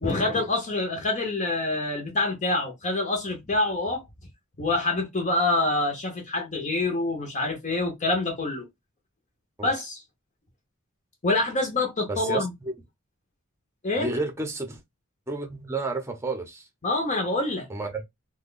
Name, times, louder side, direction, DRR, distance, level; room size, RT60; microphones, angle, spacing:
voice 1, 0.0-4.0 4.6-8.7 9.6-10.0 11.2-12.5 13.8-14.1 16.8-17.7, left 2 dB, 35° left, 0.7 m, -26 dB
voice 2, 12.1-12.7 14.0-14.8 15.3-16.7 17.7-18.0, right 3 dB, 15° right, 0.7 m, -31 dB
2.9 x 2.2 x 3.8 m
head